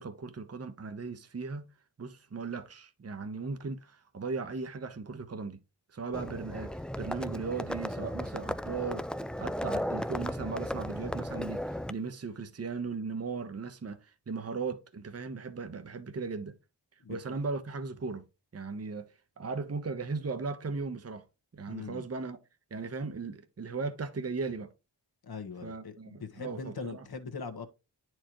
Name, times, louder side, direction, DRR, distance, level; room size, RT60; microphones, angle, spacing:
voice 1, 0.0-1.6 2.0-5.6 5.9-9.0 9.4-16.5 17.1-18.2 18.5-19.1 19.4-21.2 21.5-22.4 22.7-24.7 25.6-27.0, right 4 dB, 35° right, 0.9 m, -37 dB
Livestock farm animals working animals, 6.1-11.9, equal, ahead, 0.3 m, -35 dB
voice 2, 21.7-22.0 25.2-27.7, left 5 dB, 55° left, 1.3 m, -41 dB
9.8 x 4.6 x 3.0 m
cardioid pair, 65°, 43 cm